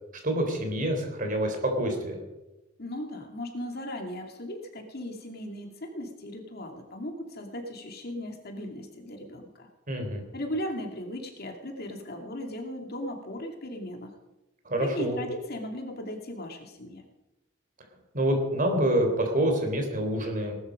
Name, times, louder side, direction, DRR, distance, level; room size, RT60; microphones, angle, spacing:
voice 1, 0.2-2.2 9.9-10.2 14.7-15.2 18.1-20.5, right 1 dB, 40° right, 4 dB, 3.9 m, -27 dB
voice 2, 2.8-9.7 10.3-14.1 14.8-17.0, left 1 dB, 50° left, 3 dB, 2.4 m, -37 dB
19.0 x 13.0 x 5.2 m, 1.0 s
head